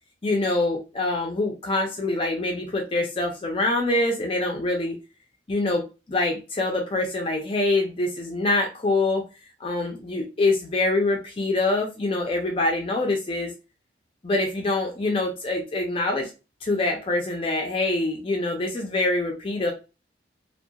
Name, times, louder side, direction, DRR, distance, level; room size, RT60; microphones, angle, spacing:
voice 1, 0.2-5.0 5.5-9.2 9.6-13.5 14.2-16.3 16.6-19.7, left 2 dB, 30° left, 1 dB, 0.4 m, -25 dB
2.7 x 2.2 x 2.2 m, 0.29 s
head